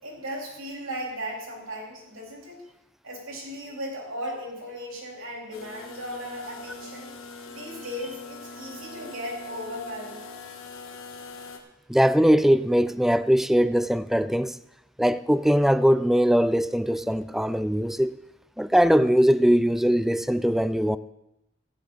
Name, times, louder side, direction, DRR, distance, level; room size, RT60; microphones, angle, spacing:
voice 1, 0.0-2.6 3.0-7.1 7.5-10.2, equal, 75° right, 3.8 m, -36 dB
sound 1, 5.5-11.6, left 2 dB, 80° left, 1.5 m, -42 dB
voice 2, 11.9-14.6 15.0-18.2 18.6-21.0, equal, ahead, 0.3 m, -21 dB
15.0 x 10.5 x 4.1 m
head